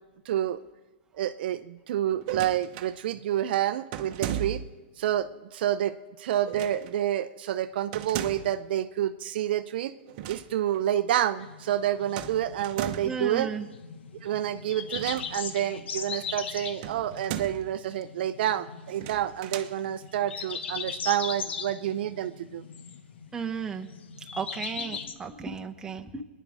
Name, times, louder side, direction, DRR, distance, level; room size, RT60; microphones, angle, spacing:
voice 1, 0.3-0.6 1.2-4.6 5.0-5.9 6.2-9.9 10.3-13.5 14.2-22.6, right 11 dB, 60° right, 11 dB, 0.6 m, -28 dB
sound 1, 2.2-2.9 3.9-4.8 6.5-6.9 7.9-8.6 10.0-10.5 10.7-10.9 12.2-13.3 14.9-15.7 16.8-17.7 18.9-19.8, right 11 dB, 45° right, 0.9 m, -36 dB
sound 2, 11.4-25.1, left 6 dB, 75° left, 1.2 m, -39 dB
voice 2, 13.0-13.7 23.3-23.9 24.3-26.2, right 5 dB, 10° right, 2 dB, 1.1 m, -34 dB
22.0 x 10.0 x 4.8 m, 1.2 s
hypercardioid pair, 130°, 6 cm